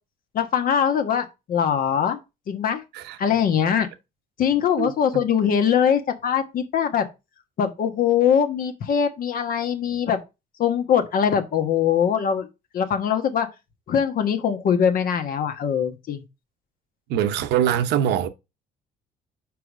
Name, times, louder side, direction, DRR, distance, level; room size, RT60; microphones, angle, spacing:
voice 1, 0.3-2.2 2.5-2.8 3.2-3.9 4.4-7.1 7.6-10.2 10.6-12.5 12.7-13.5 13.9-16.2, left 8 dB, 55° left, 1.3 m, -22 dB
voice 2, 17.1-18.3, right 10 dB, 85° right, 0.8 m, -22 dB
4.9 x 4.9 x 5.0 m
cardioid pair, 110°, 17 cm